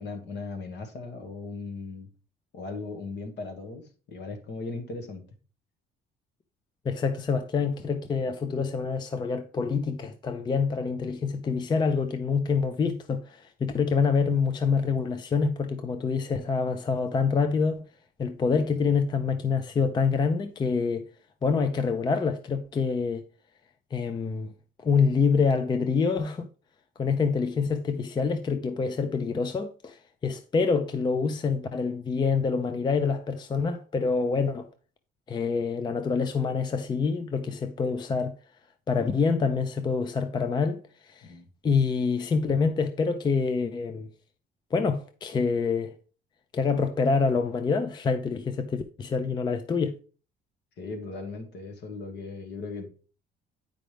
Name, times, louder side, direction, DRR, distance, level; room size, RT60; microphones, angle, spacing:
voice 1, 0.0-2.1 2.5-5.2 41.2-41.5 50.8-52.9, left 3 dB, 55° left, 1.5 m, -38 dB
voice 2, 6.9-17.8 18.2-21.0 21.4-23.2 23.9-24.5 24.8-26.5 27.0-34.7 35.3-38.3 38.9-40.8 41.0-41.3 41.6-44.1 44.7-45.9 46.5-49.9, left 5 dB, 20° left, 0.4 m, -26 dB
8.9 x 5.0 x 3.3 m
cardioid pair, 145°, 21 cm